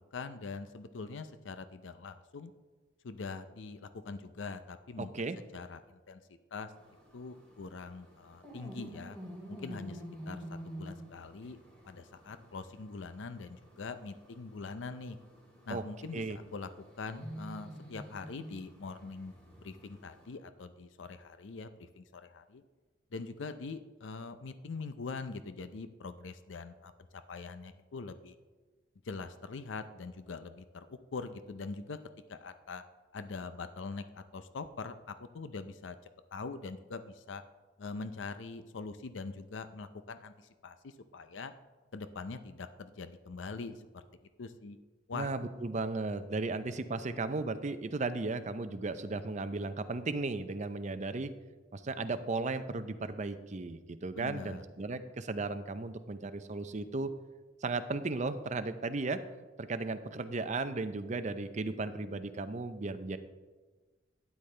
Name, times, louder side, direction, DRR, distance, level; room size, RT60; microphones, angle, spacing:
voice 1, 0.1-2.5 3.0-5.1 5.5-6.7 7.1-9.2 9.5-11.6 11.8-15.2 15.7-16.7 17.0-19.3 19.6-22.6 23.1-28.4 29.0-32.0 32.3-32.8 33.1-36.0 36.3-37.4 37.8-41.5 41.9-44.0 44.4-44.8 45.1-45.3 54.1-54.6, left 4 dB, 90° left, 11 dB, 0.5 m, -43 dB
voice 2, 5.0-5.4 15.7-15.8 16.1-16.4 45.1-51.3 51.7-57.1 57.6-59.2 59.6-63.2, right 3 dB, 40° right, 10 dB, 0.6 m, -35 dB
sound 1, 6.7-20.3, equal, 10° left, 3.3 m, -49 dB
12.0 x 9.5 x 3.3 m, 1.3 s
head